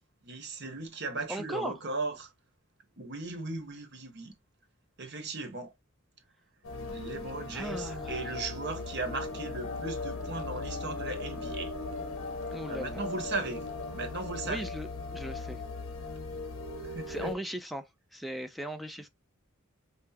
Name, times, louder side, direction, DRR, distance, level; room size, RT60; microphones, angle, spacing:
voice 1, 0.2-2.3 3.0-4.3 5.0-5.7 6.9-11.7 12.7-13.6 13.9-14.7 16.8-17.3, right 3 dB, 50° right, 1.0 m, -37 dB
voice 2, 1.3-1.7 7.5-8.2 12.5-13.3 14.4-15.6 17.1-19.1, right 1 dB, ahead, 0.4 m, -38 dB
sound 1, 6.6-17.4, left 3 dB, 70° left, 0.9 m, -38 dB
sound 2, 7.7-14.5, left 1 dB, 35° left, 1.0 m, -45 dB
5.6 x 2.0 x 2.8 m
head